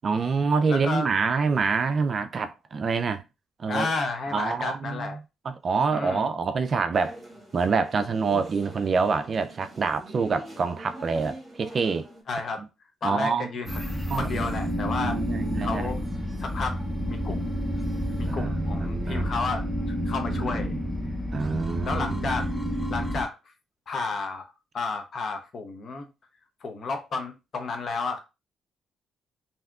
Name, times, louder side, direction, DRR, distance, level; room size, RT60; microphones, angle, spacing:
voice 1, 0.0-3.2 3.6-3.9 4.3-5.1 5.5-7.2 7.5-12.1 13.0-13.5 14.1-14.5 15.0-15.9 18.3-19.4 20.3-20.8 21.3-22.3, right 5 dB, 45° right, 0.3 m, -26 dB
voice 2, 0.7-1.1 3.7-5.2 5.9-6.3 12.3-12.7 13.0-15.2 15.6-16.0 16.4-17.6 18.2-20.8 21.8-22.5 22.9-23.4 23.9-26.1 26.6-28.2, left 4 dB, 50° left, 0.7 m, -32 dB
sound 1, 6.9-12.2, right 1 dB, 20° right, 1.5 m, -44 dB
sound 2, 13.7-23.2, equal, 5° left, 0.6 m, -29 dB
3.4 x 2.7 x 2.3 m
cardioid pair, 90°, 0 cm